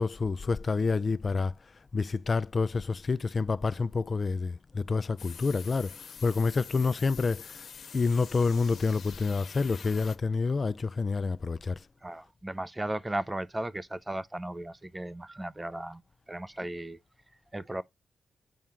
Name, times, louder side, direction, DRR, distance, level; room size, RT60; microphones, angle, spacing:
voice 1, 0.0-1.5 1.9-5.9 6.2-7.5 7.9-11.8, left 4 dB, 45° left, 0.4 m, -28 dB
sound 1, 5.2-10.2, left 6 dB, 70° left, 0.9 m, -46 dB
voice 2, 12.0-16.0 16.3-17.0 17.5-17.8, right 1 dB, 15° right, 0.5 m, -36 dB
8.6 x 4.4 x 3.6 m
cardioid pair, 80°, 0 cm